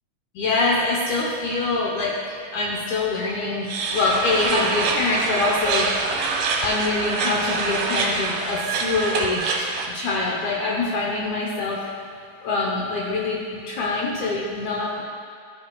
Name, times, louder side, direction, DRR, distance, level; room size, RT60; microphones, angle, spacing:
voice 1, 0.3-6.1 6.6-11.8 12.4-15.0, left 3 dB, 70° left, -4 dB, 1.9 m, -25 dB
sound 1, 3.7-9.9, right 4 dB, 75° right, 2.2 m, -25 dB
14.0 x 5.6 x 2.3 m, 2.3 s
omnidirectional pair, 4.0 m